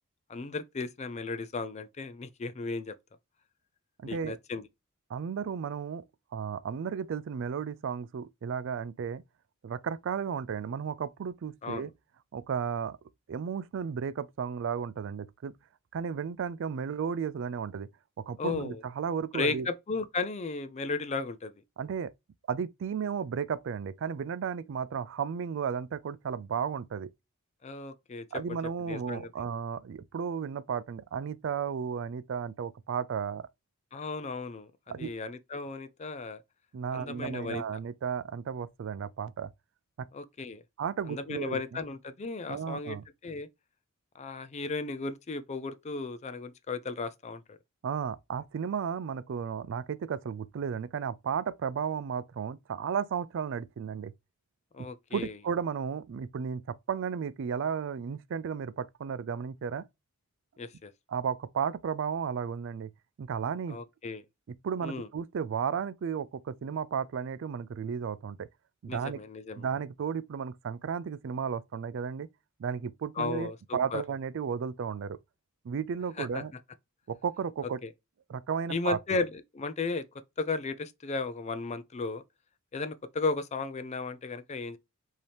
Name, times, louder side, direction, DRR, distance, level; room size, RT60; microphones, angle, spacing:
voice 1, 0.3-2.9 4.0-4.7 11.6-11.9 18.4-18.8 19.3-21.5 27.6-29.3 33.9-34.7 35.0-36.4 36.9-37.6 40.1-40.6 41.1-43.0 43.2-43.5 44.1-47.6 54.7-55.4 60.6-60.9 63.7-64.2 64.8-65.1 68.9-69.7 73.2-74.0 76.2-76.4 77.8-77.9 78.7-82.2 82.7-84.8, left 3 dB, 30° left, 0.4 m, -35 dB
voice 2, 4.0-4.4 5.1-6.0 6.3-9.2 9.6-11.9 12.3-13.0 13.3-15.6 15.9-17.9 18.3-19.7 21.8-22.1 22.5-27.1 28.3-33.5 34.9-35.1 36.7-39.5 40.0-40.1 40.8-41.8 42.5-43.0 47.8-54.1 55.1-59.8 61.1-62.9 63.2-63.8 64.6-68.5 68.8-69.2 69.6-72.3 72.6-75.2 75.6-76.5 77.1-77.8 78.3-79.2, right 7 dB, 60° right, 0.3 m, -34 dB
5.3 x 2.8 x 3.3 m
head